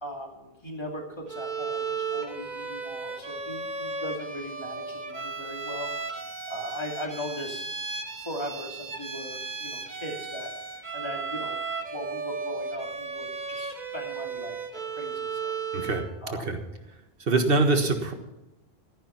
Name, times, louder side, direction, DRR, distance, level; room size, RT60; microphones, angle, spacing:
voice 1, 0.0-5.9 6.5-7.7 8.2-10.5 10.9-11.6 11.9-14.6 14.9-15.5 16.2-16.5, equal, 25° left, 0 dB, 2.8 m, -38 dB
Bowed string instrument, 1.3-16.2, right 4 dB, 45° right, 1.2 m, -35 dB
voice 2, 15.7-16.1 16.4-16.6 17.3-18.1, right 3 dB, 65° right, 6 dB, 1.8 m, -23 dB
14.0 x 10.5 x 5.9 m, 0.95 s
omnidirectional pair, 1.0 m